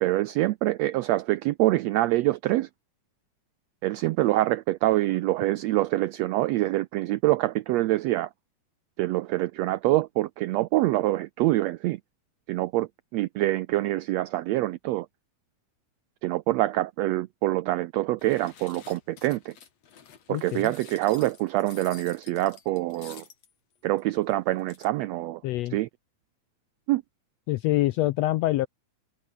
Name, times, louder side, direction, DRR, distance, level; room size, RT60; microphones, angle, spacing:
voice 1, 0.0-2.7 3.8-8.3 9.0-12.0 12.5-15.1 16.2-19.5 20.3-23.2 23.8-25.4 25.7-25.9 26.9-27.0, right 17 dB, 85° right, 1.5 m, -25 dB
sound 1, 18.2-23.5 24.0-24.1 24.3-24.4 24.6-24.9, left 7 dB, 55° left, 3.4 m, -50 dB
voice 2, 20.3-20.7 25.4-25.8 27.5-28.7, left 16 dB, 80° left, 1.5 m, -25 dB
omnidirectional pair, 3.6 m